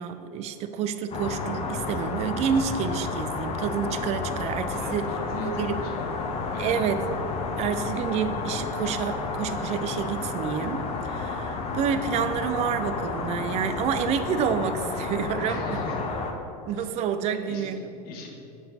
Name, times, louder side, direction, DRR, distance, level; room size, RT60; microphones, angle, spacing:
voice 1, 0.0-5.1 5.4-5.9 6.6-7.0 7.6-15.8 16.7-18.0, right 7 dB, 35° right, 10 dB, 0.4 m, -29 dB
sound 1, 1.1-16.3, left 4 dB, 30° left, 0.7 m, -31 dB
voice 2, 4.7-7.0 15.4-16.1 16.8-16.9 17.3-17.7 18.0-18.3, left 3 dB, 45° left, 0 dB, 1.3 m, -39 dB
6.3 x 4.7 x 4.1 m, 2.8 s
hypercardioid pair, 95°, 20 cm